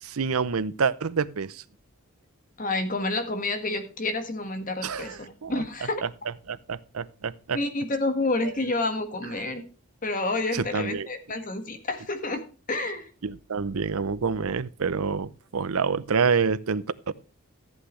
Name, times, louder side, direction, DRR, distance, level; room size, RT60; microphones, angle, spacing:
voice 1, 0.0-1.6 4.8-5.5 6.5-7.6 10.5-11.1 13.2-17.1, right 5 dB, 75° right, 0.7 m, -27 dB
voice 2, 2.6-6.0 7.5-9.6 10.0-12.4 12.7-13.1, left 2 dB, 35° left, 1.7 m, -29 dB
14.5 x 8.3 x 3.2 m
head